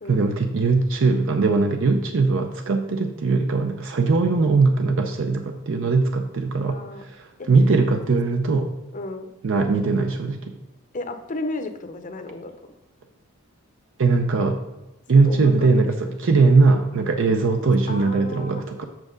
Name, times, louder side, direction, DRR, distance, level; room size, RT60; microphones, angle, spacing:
voice 1, 0.1-8.7 9.4-10.5 14.0-14.6 15.1-18.8, right 3 dB, 65° right, 5 dB, 0.6 m, -20 dB
voice 2, 6.7-7.0 7.4-7.5 8.9-9.3 10.9-12.5 15.1-15.7 16.0-16.1 17.9-18.8, left 2 dB, 40° left, 7 dB, 0.7 m, -33 dB
7.5 x 6.1 x 3.8 m, 0.98 s
head